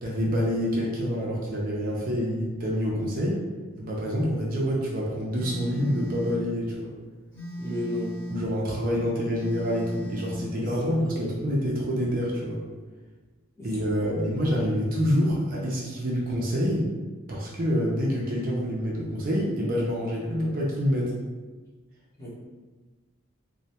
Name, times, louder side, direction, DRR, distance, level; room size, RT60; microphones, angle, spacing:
voice 1, 0.0-3.4 3.8-6.9 8.3-12.6 13.6-16.9 17.3-21.1, equal, 45° right, -3 dB, 0.4 m, -27 dB
Telephone, 5.3-6.5 7.3-8.5 9.3-10.5, equal, 60° left, 1.0 m, -36 dB
voice 2, 7.6-8.1 10.6-11.3 13.6-14.3 22.2-22.3, left 1 dB, 15° left, -8 dB, 0.7 m, -34 dB
2.1 x 2.1 x 2.8 m, 1.3 s
head